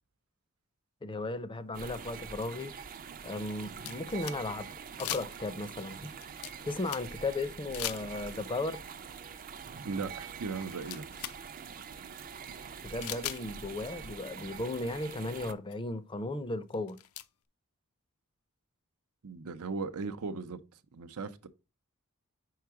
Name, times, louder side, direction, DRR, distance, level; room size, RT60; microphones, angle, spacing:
voice 1, 1.0-2.7 3.2-4.7 5.0-6.0 6.6-8.8 12.8-17.0, left 2 dB, 25° left, 0.5 m, -35 dB
sound 1, 1.7-15.5, right 6 dB, 40° right, 0.5 m, -45 dB
sound 2, 1.9-2.0 2.9-4.7 5.0-5.6 6.0-7.3 7.7-8.4 9.8-9.9 10.4-11.4 11.7-11.8 13.0-13.4 14.7-14.8 15.1-15.2 15.7-15.8 16.7-17.3, left 12 dB, 90° left, 0.5 m, -40 dB
voice 2, 9.9-11.0 19.2-20.6 20.9-21.5, right 4 dB, 90° right, 0.6 m, -37 dB
4.7 x 4.5 x 4.7 m
head